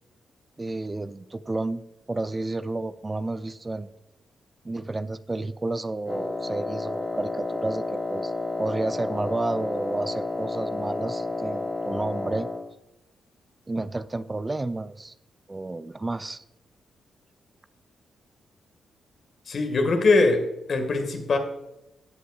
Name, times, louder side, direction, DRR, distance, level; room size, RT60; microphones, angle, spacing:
voice 1, 0.6-3.9 4.6-8.3 8.6-12.5 13.7-15.1 15.5-16.4, right 2 dB, 30° right, 12 dB, 0.5 m, -31 dB
Wind instrument woodwind instrument, 6.1-12.7, left 3 dB, 30° left, 0.9 m, -31 dB
voice 2, 19.5-21.4, left 3 dB, 60° left, 5 dB, 1.7 m, -22 dB
14.5 x 8.2 x 2.4 m, 0.88 s
hypercardioid pair, 40°, 0 cm